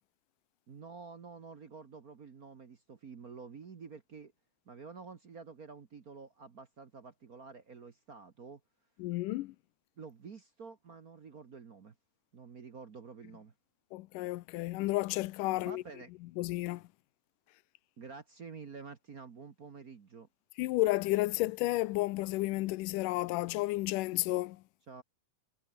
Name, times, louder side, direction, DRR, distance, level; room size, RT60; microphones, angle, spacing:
voice 1, 0.7-4.3 4.7-8.6 10.0-11.9 12.3-13.5 15.5-16.1 18.0-20.3 24.9-25.0, right 5 dB, 50° right, 1.0 m, -49 dB
voice 2, 9.0-9.6 13.9-15.8 16.4-16.8 20.6-24.6, left 19 dB, 85° left, 2.3 m, -32 dB
omnidirectional pair, 3.8 m